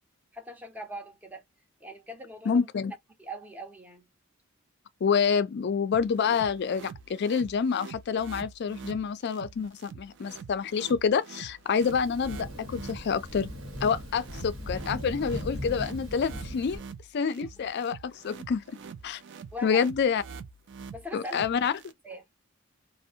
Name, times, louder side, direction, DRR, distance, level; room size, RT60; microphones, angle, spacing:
voice 1, 0.3-1.4 1.8-2.7 3.2-4.1 17.4-17.5 19.5-19.9 20.9-21.5 22.0-22.2, equal, 5° right, 0.6 m, -41 dB
voice 2, 2.5-2.9 5.0-13.5 13.8-16.8 17.1-18.6 19.0-19.2 19.6-20.2 21.1-21.7, left 6 dB, 50° left, 0.3 m, -27 dB
sound 1, 5.9-21.9, right 5 dB, 55° right, 0.3 m, -46 dB
Thunder, 11.8-16.8, left 1 dB, 75° right, 1.0 m, -39 dB
2.6 x 2.0 x 2.6 m
head